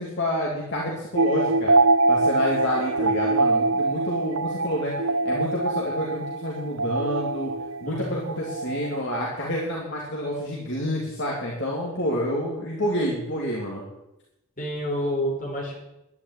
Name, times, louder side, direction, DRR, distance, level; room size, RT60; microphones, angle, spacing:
voice 1, 0.0-1.7 2.1-4.9 5.2-7.5 7.8-13.8, equal, 55° left, -3 dB, 3.3 m, -28 dB
Bells Mystery Eerie, 1.2-9.0, right 2 dB, 65° right, 0.7 m, -24 dB
voice 2, 7.9-8.3 14.6-15.8, equal, 40° left, -1 dB, 5.4 m, -29 dB
11.5 x 11.0 x 9.7 m, 0.90 s
head